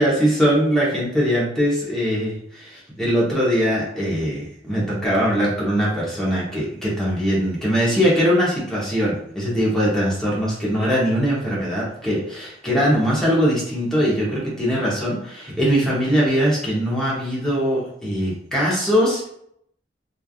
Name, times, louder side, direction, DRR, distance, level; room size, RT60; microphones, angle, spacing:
voice 1, 0.0-19.3, equal, 5° left, -6 dB, 0.9 m, -21 dB
3.2 x 2.4 x 2.4 m, 0.71 s
head